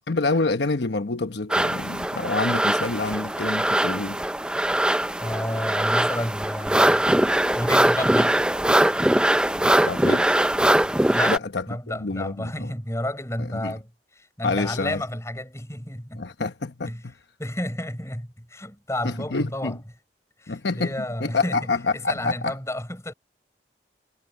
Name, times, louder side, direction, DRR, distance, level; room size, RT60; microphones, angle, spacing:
voice 1, 0.1-4.2 9.8-10.4 11.3-12.7 13.4-13.7 14.4-15.0 16.1-16.9 19.0-19.8 20.5-20.9 21.2-22.5, left 3 dB, 80° left, 1.0 m, -27 dB
sound 1, 1.5-11.4, right 1 dB, 5° right, 0.4 m, -21 dB
voice 2, 5.2-7.1 7.5-8.4 11.1-11.4 11.7-13.9 14.2-16.3 16.9-17.1 17.4-19.8 20.4-21.6 21.9-23.1, left 1 dB, 15° left, 4.9 m, -31 dB
head